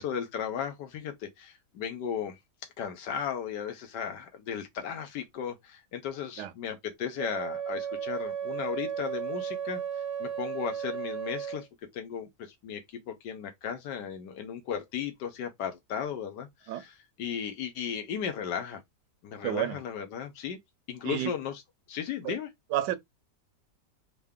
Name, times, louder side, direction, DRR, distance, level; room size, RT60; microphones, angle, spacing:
voice 1, 0.0-2.4 2.8-11.7 11.9-18.8 19.2-20.6 20.9-21.6 21.9-22.5, left 8 dB, 80° left, 1.3 m, -36 dB
Wind instrument woodwind instrument, 7.2-11.7, right 8 dB, 60° right, 0.9 m, -34 dB
voice 2, 19.4-19.8 21.0-21.3 22.2-22.4 22.7-23.0, right 13 dB, 80° right, 1.2 m, -30 dB
3.7 x 2.2 x 3.5 m
omnidirectional pair, 1.9 m